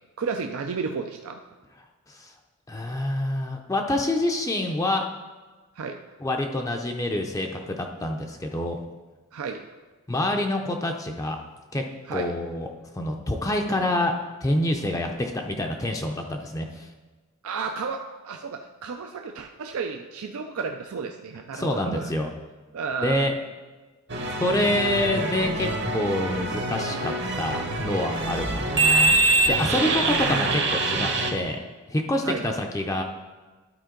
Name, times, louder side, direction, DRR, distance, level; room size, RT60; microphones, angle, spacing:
voice 1, 0.2-1.4 5.8-6.0 9.3-9.7 12.1-12.3 17.4-22.1 22.7-23.3 29.6-30.3 32.2-32.7, right 5 dB, 75° right, 4 dB, 0.4 m, -33 dB
voice 2, 2.7-5.1 6.2-8.8 10.1-11.4 11.7-12.7 12.9-16.9 21.5-22.3 23.0-23.3 24.4-29.2 29.5-31.6 31.9-33.0, left 1 dB, 15° left, 3 dB, 0.5 m, -27 dB
sound 1, 24.1-31.3, right 2 dB, 50° right, 0.9 m, -24 dB
12.0 x 4.4 x 3.8 m, 1.3 s
head